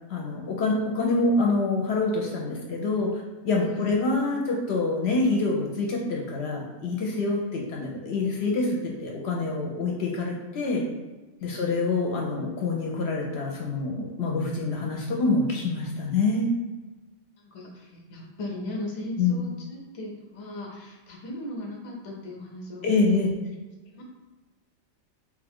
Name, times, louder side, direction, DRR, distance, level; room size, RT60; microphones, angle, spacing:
voice 1, 0.1-10.8 11.4-16.5 19.2-19.4 22.8-23.3, left 3 dB, 65° left, -1 dB, 0.8 m, -26 dB
voice 2, 17.5-23.3 23.9-24.0, left 1 dB, 35° left, -1 dB, 0.6 m, -37 dB
3.5 x 2.3 x 3.5 m, 1.2 s
omnidirectional pair, 1.3 m